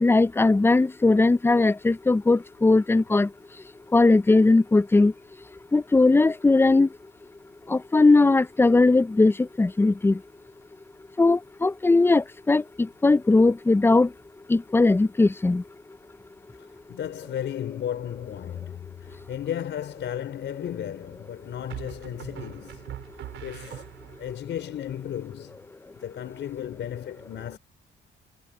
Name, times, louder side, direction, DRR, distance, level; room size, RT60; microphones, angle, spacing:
voice 1, 0.0-3.3 3.9-5.1 5.7-6.9 7.7-10.2 11.2-12.6 13.0-14.1 14.5-15.6, left 3 dB, 10° left, 0.4 m, -19 dB
voice 2, 16.6-23.0 23.4-23.9 24.2-25.6 26.0-27.6, left 10 dB, 70° left, 5.0 m, -34 dB
sound 1, 19.0-19.6 21.7-24.4, right 12 dB, 80° right, 4.8 m, -41 dB
cardioid pair, 90°, 20 cm